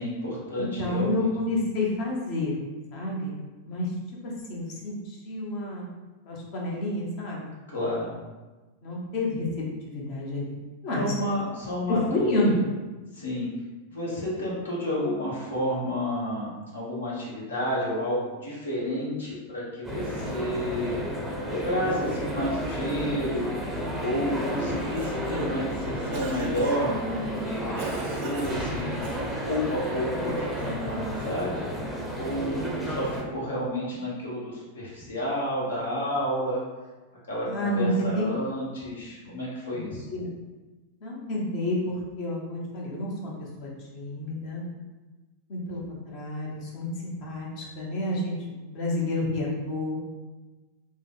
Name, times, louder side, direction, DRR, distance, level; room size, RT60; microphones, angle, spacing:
voice 1, 0.0-1.3 7.7-8.2 10.9-12.5 13.1-13.5 13.9-21.0 21.5-29.0 29.4-36.6 37.3-40.0, equal, 70° left, -5 dB, 1.1 m, -31 dB
voice 2, 0.5-2.6 2.9-3.4 3.6-3.9 4.2-5.9 6.3-7.5 8.8-10.5 10.8-11.1 11.9-12.6 37.4-38.2 40.1-40.3 41.0-44.7 45.5-46.9 47.2-50.0, left 1 dB, 45° left, -3 dB, 0.8 m, -29 dB
sound 1, 19.8-33.2, equal, ahead, 0.6 m, -32 dB
Cough, 24.6-25.6 26.1-26.9 27.8-29.4, right 3 dB, 45° right, 0.5 m, -38 dB
3.2 x 2.1 x 3.7 m, 1.2 s
figure-of-eight pair, 90°, 0 cm